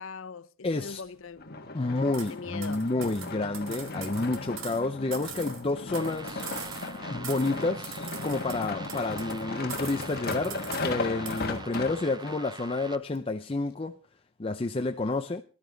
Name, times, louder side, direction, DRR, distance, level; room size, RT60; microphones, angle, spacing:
voice 1, 0.0-1.5 2.2-2.9, left 5 dB, 65° left, 0.7 m, -41 dB
voice 2, 0.6-1.0 1.7-6.5 7.1-14.0 14.4-15.4, left 2 dB, 25° left, 0.5 m, -30 dB
sound 1, 1.4-12.4 13.0-13.1, left 3 dB, 45° left, 1.5 m, -36 dB
sound 2, 2.1-2.3 2.6-4.8 5.1-7.0 7.2-7.6 7.8-9.4 9.7-10.9 11.3-11.5, right 8 dB, 70° right, 2.0 m, -42 dB
sound 3, 6.0-13.0, right 3 dB, 20° right, 0.6 m, -45 dB
19.0 x 11.5 x 3.9 m
head